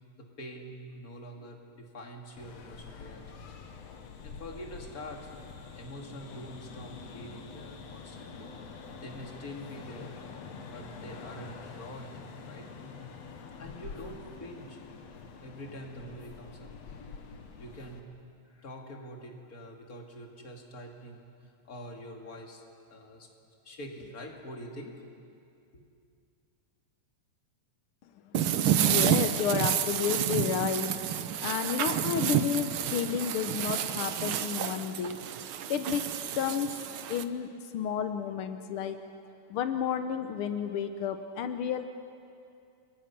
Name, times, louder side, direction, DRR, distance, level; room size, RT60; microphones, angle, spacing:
voice 1, 0.2-3.5 4.2-5.3 5.6-10.1 10.7-12.7 13.6-14.8 15.4-16.7 17.6-18.1 18.4-21.2 21.6-22.6 22.9-23.3 23.6-24.9 25.7-25.8, equal, 30° left, 2 dB, 2.4 m, -45 dB
sound 1, 2.4-18.0, left 5 dB, 60° left, 2.5 m, -46 dB
sound 2, 28.3-37.2, right 9 dB, 80° right, 1.1 m, -29 dB
voice 2, 28.8-31.0 31.4-35.2 35.7-36.0 36.3-36.8 37.1-39.0 39.5-41.9, left 8 dB, 80° left, 8 dB, 1.2 m, -31 dB
29.5 x 22.5 x 6.0 m, 2.4 s
omnidirectional pair, 3.5 m